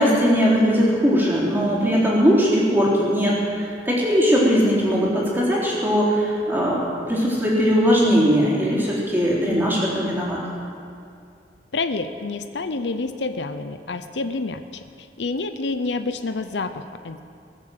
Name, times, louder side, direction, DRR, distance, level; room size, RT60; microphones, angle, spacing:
voice 1, 0.0-10.4, equal, 10° right, -6 dB, 3.7 m, -20 dB
voice 2, 11.7-14.8 15.2-17.2, left 3 dB, 85° left, 9 dB, 0.8 m, -28 dB
20.5 x 7.6 x 7.8 m, 2.3 s
head